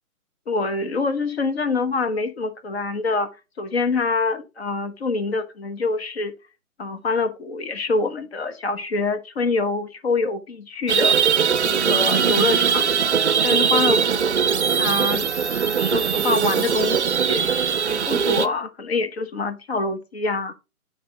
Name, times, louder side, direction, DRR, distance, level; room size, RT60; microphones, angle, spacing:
voice 1, 0.5-3.3 3.6-6.3 6.8-11.2 11.6-12.9 13.4-14.3 14.7-15.3 15.7-17.5 17.9-20.5, left 3 dB, 45° left, 1.1 m, -25 dB
sound 1, 10.9-18.5, right 7 dB, 50° right, 0.5 m, -20 dB
8.5 x 3.6 x 3.8 m
figure-of-eight pair, 140°, 45 cm